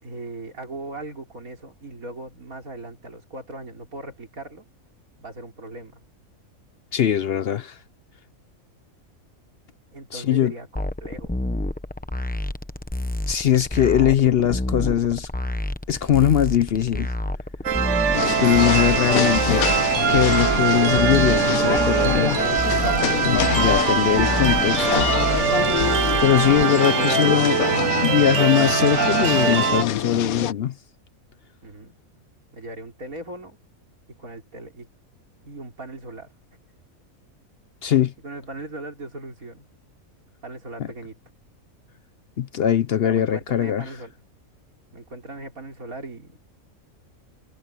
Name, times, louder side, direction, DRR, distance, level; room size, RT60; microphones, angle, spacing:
voice 1, 0.0-4.6 5.2-6.0 9.9-11.4 26.6-27.5 31.6-32.0 32.5-33.6 34.2-34.9 35.4-36.3 38.2-39.7 40.4-41.2 43.0-44.2 44.9-46.4, right 2 dB, 75° right, 4.3 m, -38 dB
voice 2, 6.9-7.8 10.1-10.5 13.3-15.3 15.9-17.1 18.2-19.6 20.1-22.3 23.2-25.1 26.2-27.6 28.0-30.7 37.8-38.1 40.8-40.9 42.4-43.8, left 10 dB, 60° left, 0.7 m, -21 dB
sound 1, 10.7-26.6, left 1 dB, 10° left, 0.7 m, -29 dB
sound 2, 17.6-29.8, right 8 dB, 60° right, 1.1 m, -22 dB
sound 3, 18.1-30.5, left 11 dB, 80° left, 1.2 m, -26 dB
omnidirectional pair, 1.5 m